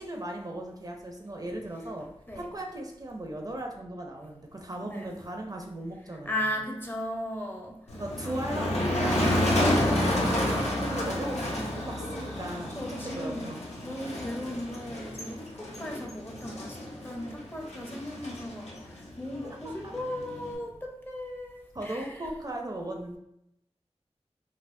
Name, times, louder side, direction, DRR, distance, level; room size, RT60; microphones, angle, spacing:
voice 1, 0.0-2.1 2.3-6.5 7.9-13.6 19.8-19.9 21.7-23.2, right 1 dB, 35° right, 1 dB, 0.5 m, -37 dB
voice 2, 6.3-7.8 8.2-8.4 12.7-13.5 13.8-16.8 17.0-22.3, left 1 dB, 20° left, 1 dB, 0.6 m, -36 dB
Motor vehicle (road), 7.9-20.5, left 1 dB, 80° left, 0.7 m, -30 dB
4.2 x 2.0 x 2.6 m, 0.79 s
wide cardioid pair, 65°, 11 cm